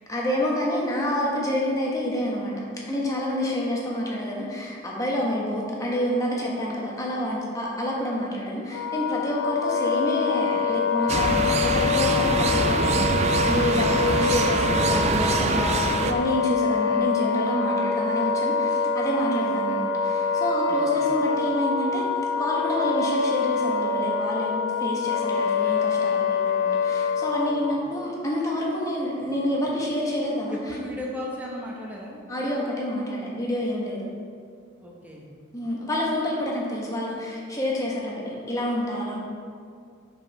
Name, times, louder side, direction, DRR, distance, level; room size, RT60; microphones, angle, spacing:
voice 1, 0.1-2.5 2.9-22.0 22.4-30.6 32.3-34.1 35.5-39.2, left 1 dB, 15° left, -4 dB, 1.1 m, -28 dB
Wind instrument woodwind instrument, 8.7-27.8, left 5 dB, 85° left, 0.5 m, -25 dB
sound 1, 11.1-16.1, right 3 dB, 35° right, 0.3 m, -25 dB
voice 2, 20.7-21.0 30.5-32.2 34.8-35.3, left 1 dB, 10° right, -3 dB, 0.9 m, -37 dB
5.5 x 4.9 x 5.4 m, 2.3 s
head